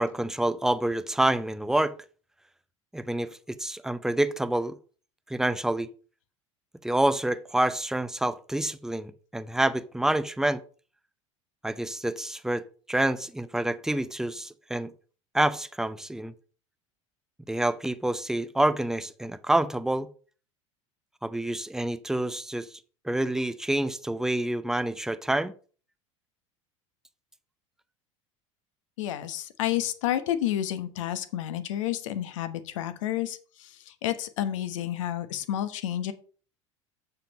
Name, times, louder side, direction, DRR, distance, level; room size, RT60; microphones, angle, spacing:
voice 1, 0.0-1.9 2.9-4.7 5.3-5.9 6.8-10.6 11.6-12.6 12.9-14.9 15.3-16.3 17.5-20.1 21.2-22.7 23.0-25.5, right 1 dB, 5° right, 0.6 m, -27 dB
voice 2, 29.0-36.1, left 12 dB, 75° left, 1.0 m, -30 dB
7.0 x 6.0 x 5.1 m
hypercardioid pair, 80°, 16 cm